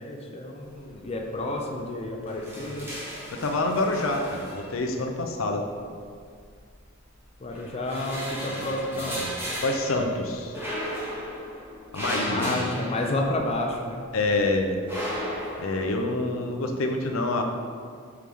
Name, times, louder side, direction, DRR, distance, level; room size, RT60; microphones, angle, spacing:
voice 1, 0.0-2.9 7.4-9.3 12.2-14.0, left 1 dB, 30° left, 0 dB, 0.5 m, -30 dB
sound 1, 0.7-1.2 1.5-1.7 2.0-5.1 6.0-7.0 7.4-13.7 14.1-16.0, equal, 10° right, 1.3 m, -35 dB
voice 2, 2.6-2.9 3.3-5.7 8.5-8.7 8.9-9.3 9.6-10.6 11.9-12.6 14.1-14.8 15.6-17.4, left 2 dB, 85° left, 3 dB, 0.6 m, -27 dB
5.9 x 4.8 x 3.5 m, 2.1 s
head